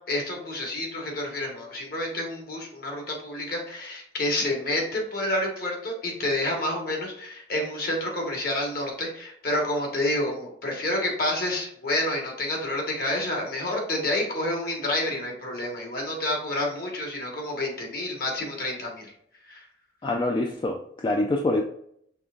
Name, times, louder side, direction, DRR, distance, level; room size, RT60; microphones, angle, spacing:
voice 1, 0.1-19.1 19.5-19.6, left 1 dB, 55° left, 1 dB, 1.3 m, -29 dB
voice 2, 20.0-21.6, left 2 dB, 25° left, 2 dB, 0.3 m, -25 dB
5.4 x 3.4 x 2.3 m, 0.69 s
head